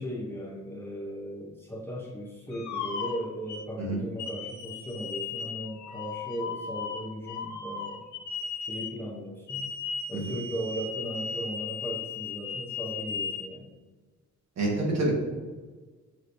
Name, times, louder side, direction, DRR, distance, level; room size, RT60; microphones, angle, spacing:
voice 1, 0.0-8.0 8.6-9.6 10.1-13.7, equal, 5° left, -4 dB, 0.6 m, -37 dB
sound 1, 2.5-3.7 4.2-9.0 9.5-13.5, left 5 dB, 65° left, 0.6 m, -36 dB
voice 2, 14.6-15.1, right 2 dB, 60° right, -2 dB, 1.3 m, -27 dB
6.6 x 3.0 x 2.6 m, 1.4 s
wide cardioid pair, 160°, 30 cm